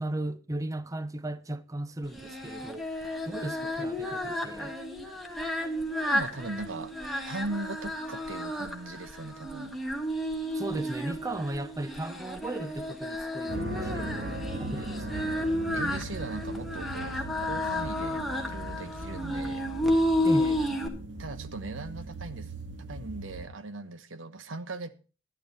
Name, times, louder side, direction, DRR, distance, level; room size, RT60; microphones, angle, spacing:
voice 1, 0.0-2.9 3.2-4.7 10.5-15.3 20.2-20.7, right 1 dB, 15° right, 0.5 m, -36 dB
Singing, 2.1-20.9, left 1 dB, ahead, 1.6 m, -32 dB
voice 2, 6.1-6.9 7.3-9.7 15.7-19.6 21.2-22.5 22.8-24.9, right 2 dB, 90° right, 1.1 m, -39 dB
sound 1, 13.5-23.5, right 2 dB, 70° right, 1.7 m, -39 dB
12.0 x 11.0 x 4.1 m
head